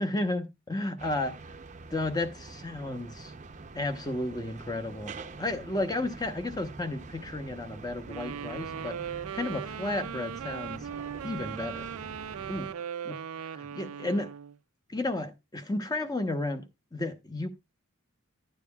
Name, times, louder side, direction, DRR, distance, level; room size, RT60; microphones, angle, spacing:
voice 1, 0.0-1.4 1.9-3.3 3.7-10.9 11.2-11.9 12.5-14.3 14.9-17.5, left 2 dB, 20° left, 0.9 m, -33 dB
sound 1, 1.0-12.7, right 3 dB, 35° right, 0.6 m, -45 dB
Wind instrument woodwind instrument, 8.1-14.5, right 8 dB, 80° right, 0.4 m, -38 dB
12.0 x 9.1 x 2.3 m
head